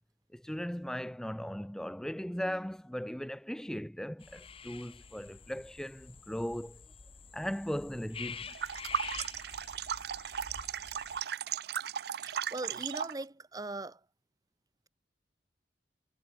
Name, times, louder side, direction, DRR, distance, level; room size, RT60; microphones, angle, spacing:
voice 1, 0.3-6.8 7.3-8.5, equal, 5° left, 0.4 m, -38 dB
sound 1, 4.2-11.2, left 6 dB, 30° left, 0.8 m, -47 dB
sound 2, 8.5-13.2, right 8 dB, 65° right, 0.4 m, -36 dB
voice 2, 12.2-14.1, right 2 dB, 20° right, 0.9 m, -40 dB
head